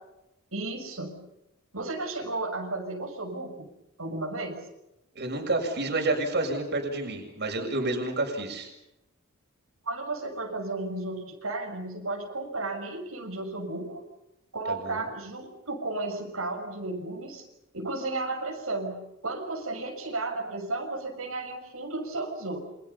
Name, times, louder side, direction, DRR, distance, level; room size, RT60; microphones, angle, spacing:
voice 1, 0.5-1.3 1.7-3.7 4.0-4.7 9.8-14.0 14.5-17.4 17.7-22.6, right 2 dB, 80° right, 1 dB, 6.7 m, -33 dB
voice 2, 5.2-8.7 14.7-15.1, right 2 dB, 55° right, 3 dB, 7.2 m, -29 dB
30.0 x 27.0 x 5.8 m, 0.90 s
head